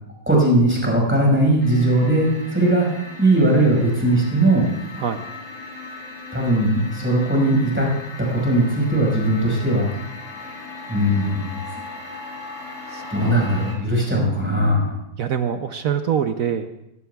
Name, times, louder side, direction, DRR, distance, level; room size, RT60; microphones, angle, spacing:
voice 1, 0.3-2.9 3.2-4.7 6.3-7.9 8.2-9.9 10.9-11.6 13.1-15.0, right 1 dB, 5° right, -2 dB, 5.3 m, -19 dB
sound 1, 1.6-13.8, left 3 dB, 75° left, 3.2 m, -38 dB
voice 2, 12.9-13.3 15.2-16.7, right 8 dB, 75° right, 8 dB, 0.7 m, -24 dB
20.5 x 16.5 x 2.3 m, 0.84 s
omnidirectional pair, 2.2 m